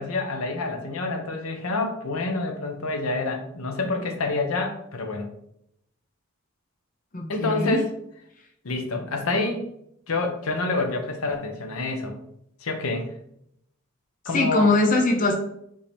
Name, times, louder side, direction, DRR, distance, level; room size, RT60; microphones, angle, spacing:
voice 1, 0.0-5.3 7.3-7.9 8.6-9.6 10.1-12.1 12.6-13.1 14.2-14.7, left 3 dB, 80° left, 4 dB, 0.8 m, -27 dB
voice 2, 7.1-7.8 14.3-15.3, left 2 dB, 35° left, 1 dB, 0.6 m, -21 dB
5.3 x 2.8 x 3.4 m, 0.74 s
head